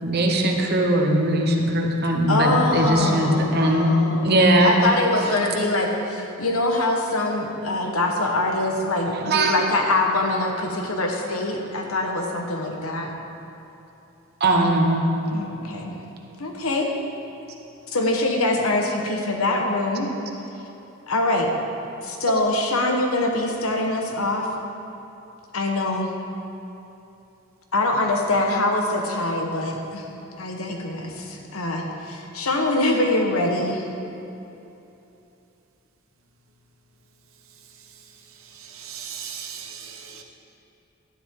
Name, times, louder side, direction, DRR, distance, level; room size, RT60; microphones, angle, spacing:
voice 1, 0.0-4.8 9.2-9.5 14.4-15.1, right 1 dB, 50° right, 1.1 m, -20 dB
voice 2, 2.3-13.1 15.3-15.9 16.4-16.9 17.9-20.1 21.1-21.5 22.0-24.5 25.5-26.1 27.7-30.1 30.4-33.9, left 2 dB, 85° left, 1.3 m, -24 dB
voice 3, 38.8-40.2, right 8 dB, 75° right, 1.0 m, -37 dB
11.5 x 10.5 x 3.8 m
head